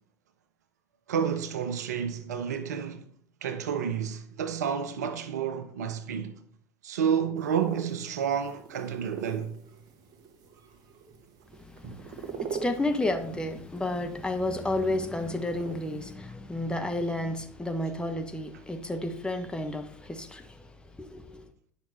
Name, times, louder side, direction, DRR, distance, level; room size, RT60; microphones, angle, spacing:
voice 1, 1.1-3.1 3.4-6.4 6.8-9.6, right 7 dB, 75° right, 0.8 m, -30 dB
sound 1, 7.4-16.1, right 6 dB, 45° right, 1.5 m, -43 dB
voice 2, 11.6-21.5, left 1 dB, 10° left, 1.1 m, -32 dB
9.9 x 6.0 x 4.2 m
figure-of-eight pair, 75°, 9 cm